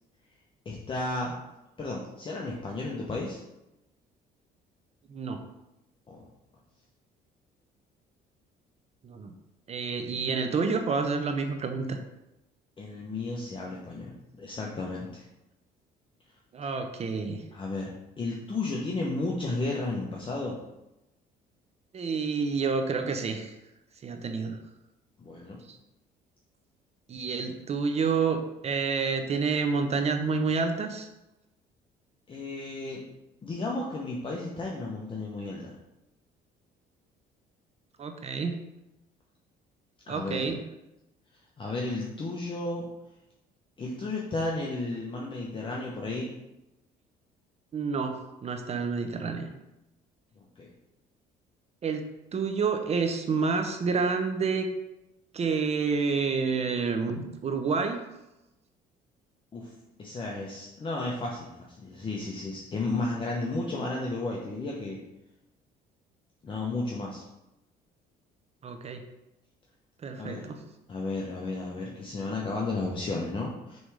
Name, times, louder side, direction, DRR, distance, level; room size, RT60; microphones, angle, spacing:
voice 1, 0.6-1.3 1.8-3.4 6.1-6.3 12.8-15.3 17.5-20.6 24.4-24.5 25.2-25.6 32.3-33.0 33.4-35.7 40.1-40.5 41.6-42.9 43.8-46.3 50.4-50.7 59.5-59.7 60.0-65.0 66.4-67.2 70.2-70.5 70.9-73.8, left 2 dB, 30° left, -2 dB, 0.9 m, -33 dB
voice 2, 9.7-12.0 16.5-17.4 21.9-23.5 24.0-24.6 25.7-25.8 27.1-31.1 38.0-38.5 40.1-40.6 47.7-49.5 51.8-52.0 52.3-54.7 55.3-58.0 68.6-69.0 70.0-70.6, right 5 dB, 40° right, 6 dB, 0.7 m, -29 dB
6.4 x 3.4 x 4.8 m, 0.93 s
cardioid pair, 110°, 17 cm